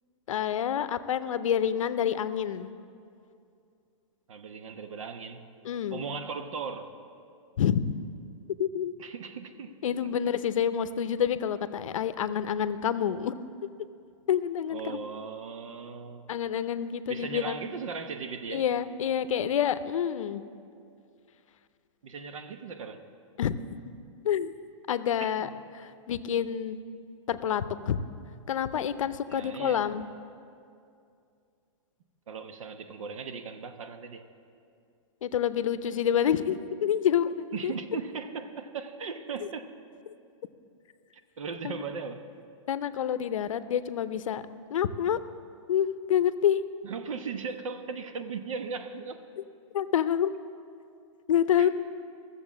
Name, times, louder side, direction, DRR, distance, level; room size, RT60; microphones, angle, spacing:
voice 1, 0.3-2.7 5.6-6.1 7.6-7.8 8.6-8.9 9.8-13.4 14.3-15.0 16.3-17.7 18.5-20.4 23.4-23.5 24.2-24.5 24.9-26.8 27.3-28.0 28.5-30.1 35.2-37.7 41.6-41.7 42.7-44.4 44.7-45.2 45.7-46.6 49.7-50.3 51.3-51.7, left 9 dB, 80° left, 13 dB, 0.6 m, -28 dB
voice 2, 4.3-5.4 5.9-6.9 9.0-10.1 14.7-16.3 17.1-18.6 22.0-23.0 25.2-25.5 29.3-29.9 32.3-34.2 37.5-39.7 41.4-42.2 46.8-49.2 51.6-51.7, right 5 dB, 80° right, 8 dB, 1.0 m, -38 dB
14.0 x 7.1 x 7.2 m, 2.5 s
hypercardioid pair, 170°, 17 cm